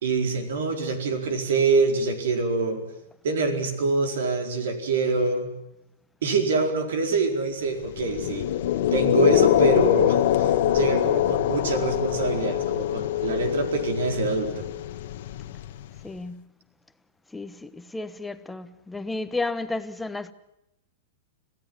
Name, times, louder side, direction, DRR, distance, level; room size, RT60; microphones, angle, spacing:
voice 1, 0.0-2.8 3.2-5.5 6.2-8.5 8.9-14.7, right 3 dB, 80° right, 4.5 m, -25 dB
sound 1, 7.9-16.0, left 11 dB, 65° left, 1.4 m, -24 dB
voice 2, 16.0-16.5 17.3-20.3, left 3 dB, 5° left, 1.1 m, -32 dB
26.5 x 16.5 x 9.5 m
hypercardioid pair, 140°, 0 cm